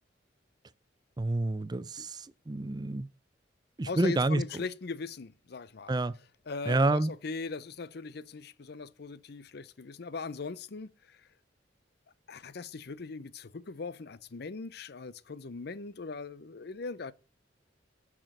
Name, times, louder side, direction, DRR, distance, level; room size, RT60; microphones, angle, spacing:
voice 1, 1.2-3.1 3.8-4.4 5.9-6.1 6.7-7.1, right 2 dB, 25° right, 0.5 m, -28 dB
voice 2, 3.9-5.9 6.5-11.2 12.3-17.1, left 4 dB, 60° left, 0.6 m, -40 dB
9.0 x 6.1 x 7.8 m
head